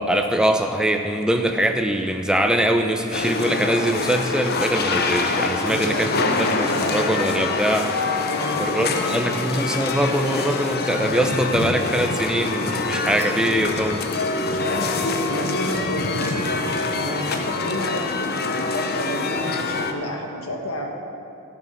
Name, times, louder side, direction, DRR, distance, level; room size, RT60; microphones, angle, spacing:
voice 1, 0.0-7.9 8.6-14.1, right 1 dB, 5° right, 5 dB, 0.6 m, -22 dB
sound 1, 3.1-19.9, left 3 dB, 45° left, 0.7 m, -25 dB
voice 2, 5.6-6.4 6.7-7.0 8.2-9.4 14.4-20.8, equal, 80° left, 1 dB, 1.6 m, -30 dB
13.5 x 7.3 x 5.8 m, 2.7 s
head